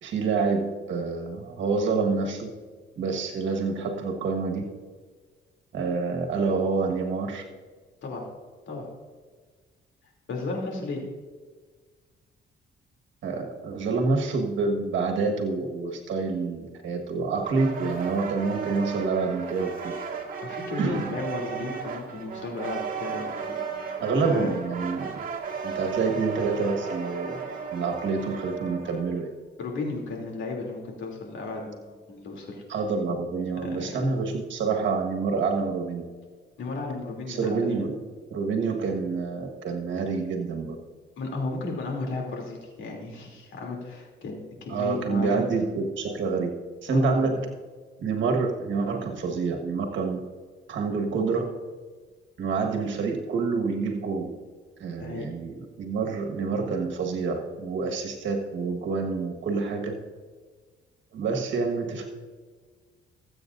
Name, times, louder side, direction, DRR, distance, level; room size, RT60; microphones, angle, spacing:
voice 1, 0.0-2.5 3.0-4.7 5.7-7.4 13.2-19.9 20.8-21.1 24.0-25.1 25.6-27.4 27.7-29.3 32.7-36.0 37.3-37.9 38.3-40.8 44.7-46.5 46.8-47.3 48.0-50.2 50.7-51.5 52.4-54.3 54.8-59.9 61.1-62.1, right 4 dB, 70° right, 2 dB, 1.6 m, -27 dB
voice 2, 10.3-11.0 20.4-24.5 29.6-32.6 33.6-34.0 36.6-37.9 41.2-45.4 46.9-47.3 55.0-55.3, left 3 dB, 70° left, -1 dB, 3.0 m, -34 dB
sound 1, 17.4-29.2, right 5 dB, 45° right, 1.9 m, -35 dB
20.0 x 8.4 x 2.6 m, 1.5 s
cardioid pair, 90°, 20 cm